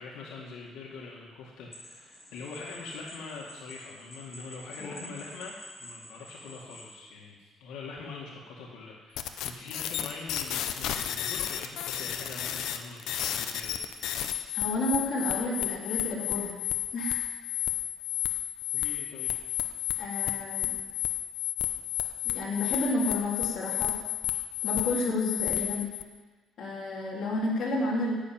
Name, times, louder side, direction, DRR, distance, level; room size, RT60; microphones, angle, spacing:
voice 1, 0.0-13.8 18.7-19.3, left 4 dB, 90° left, -2 dB, 2.1 m, -43 dB
sound 1, 1.7-6.9, left 1 dB, 10° left, 3.4 m, -48 dB
sound 2, 9.2-26.0, left 11 dB, 70° left, 0.8 m, -32 dB
voice 2, 14.5-16.5 16.9-17.2 18.8-18.9 20.0-20.7 22.2-23.9 24.6-25.9 26.6-28.1, left 2 dB, 45° left, -5 dB, 3.4 m, -31 dB
10.5 x 7.1 x 9.1 m, 1.4 s
cardioid pair, 175°, 0 cm